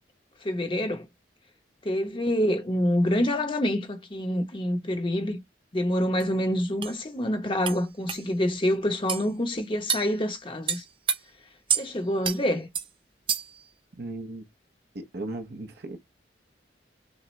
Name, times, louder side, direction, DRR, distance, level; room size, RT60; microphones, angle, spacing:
voice 1, 0.4-1.1 1.8-5.4 5.7-10.8 11.7-12.7, left 1 dB, 25° left, 0.9 m, -27 dB
sound 1, 6.2-6.3 6.8-7.0 7.7-7.8 8.1-8.2 9.1-9.3 9.9-10.1 10.7-11.2 11.7-11.9 12.2-12.4 12.8-12.9 13.3-13.6, right 7 dB, 30° right, 0.5 m, -28 dB
voice 2, 14.0-14.5 14.9-16.0, right 2 dB, 55° right, 0.8 m, -36 dB
6.2 x 2.2 x 3.1 m
head